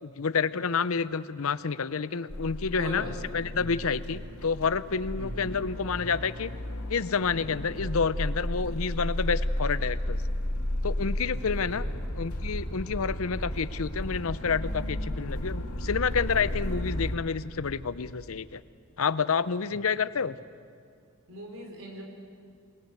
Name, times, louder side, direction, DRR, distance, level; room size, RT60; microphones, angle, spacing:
voice 1, 0.0-6.5 6.9-10.2 10.8-11.9 12.2-18.6 19.0-20.4, left 5 dB, 70° left, 16 dB, 0.7 m, -29 dB
sound 1, 2.3-17.1, left 1 dB, 85° left, 2.3 m, -33 dB
voice 2, 2.7-3.8 4.1-4.2 5.2-5.5 11.3-12.4 19.7-19.8 21.3-22.0, equal, 60° right, 2 dB, 4.6 m, -41 dB
sound 2, 11.7-17.7, equal, 25° left, 4.4 m, -42 dB
28.0 x 19.5 x 7.9 m, 2.2 s
head